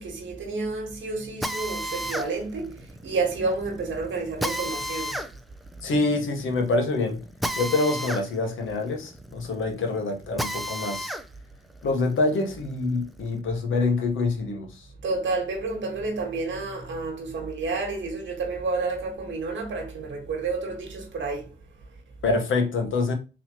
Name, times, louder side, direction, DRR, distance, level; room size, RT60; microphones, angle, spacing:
voice 1, 0.0-2.7 3.0-5.2 15.0-21.5, right 3 dB, 70° right, 1.4 m, -30 dB
Drill, 1.4-11.3 11.7-13.3, equal, ahead, 0.5 m, -34 dB
voice 2, 5.8-7.2 7.6-11.1 11.8-14.7 22.2-23.1, left 3 dB, 70° left, 1.1 m, -25 dB
3.9 x 3.0 x 2.9 m
supercardioid pair, 60°, 21 cm